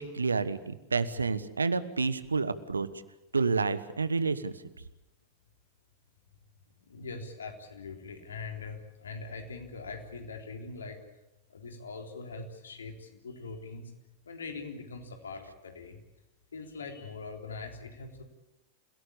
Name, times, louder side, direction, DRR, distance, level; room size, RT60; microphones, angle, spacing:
voice 1, 0.0-2.9 3.3-4.5, right 4 dB, 75° right, 15 dB, 1.3 m, -29 dB
voice 2, 6.8-11.0 11.5-13.9 14.3-16.0 16.5-18.2, left 4 dB, 70° left, 4 dB, 3.7 m, -42 dB
28.5 x 17.5 x 8.6 m, 0.92 s
figure-of-eight pair, 90°, 0 cm